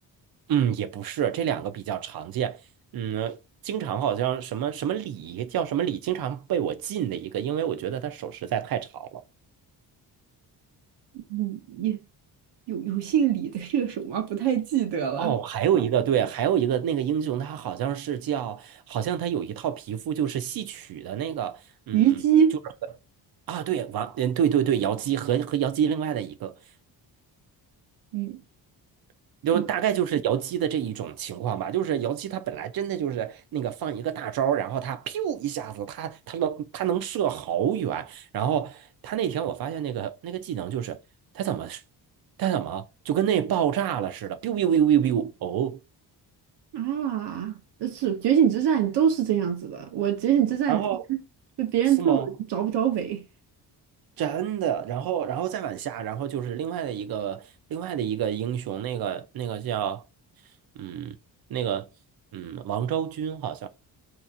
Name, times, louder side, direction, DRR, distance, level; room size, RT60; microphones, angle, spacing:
voice 1, 0.5-2.6 2.9-3.4 3.6-9.2 15.2-21.6 21.9-22.1 23.5-26.6 29.4-41.0 41.3-41.8 42.4-45.8 50.7-51.0 52.0-52.3 54.2-60.0 60.8-61.2 61.5-61.9 62.3-63.7, right 9 dB, 60° right, 0.6 m, -27 dB
voice 2, 11.3-12.0 12.7-15.4 21.9-22.5 28.1-28.4 29.5-29.6 46.7-50.8 51.1-51.2 51.6-53.2, right 9 dB, 85° right, 0.9 m, -24 dB
2.9 x 2.4 x 3.6 m
wide cardioid pair, 165°, 40 cm